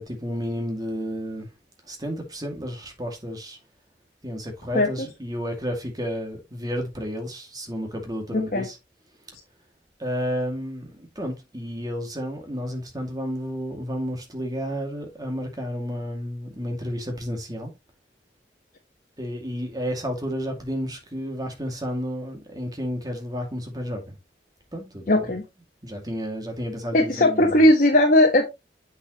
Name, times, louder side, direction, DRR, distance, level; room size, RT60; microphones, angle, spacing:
voice 1, 0.0-1.5 1.9-3.6 4.2-8.8 10.0-17.7 19.2-24.1 24.7-25.2 25.8-27.5, equal, 20° right, 2.3 m, -31 dB
voice 2, 8.3-8.7 25.1-25.4 26.9-28.4, left 1 dB, 50° left, 1.4 m, -18 dB
8.0 x 6.5 x 3.0 m
head